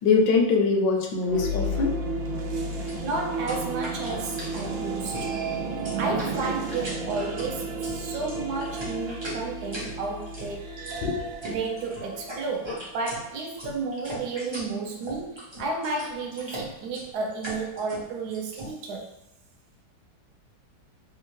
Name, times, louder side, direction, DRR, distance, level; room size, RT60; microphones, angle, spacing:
voice 1, 0.0-2.0 11.0-11.2, left 4 dB, 75° left, 2 dB, 1.1 m, -22 dB
sound 1, 1.2-13.1, right 2 dB, 85° right, 1.4 m, -33 dB
sound 2, 2.7-18.7, equal, 45° right, 0.3 m, -39 dB
voice 2, 3.0-5.4 6.0-10.8 11.5-19.1, right 3 dB, 70° right, 0 dB, 1.0 m, -32 dB
3.5 x 2.3 x 3.1 m, 0.85 s
omnidirectional pair, 2.0 m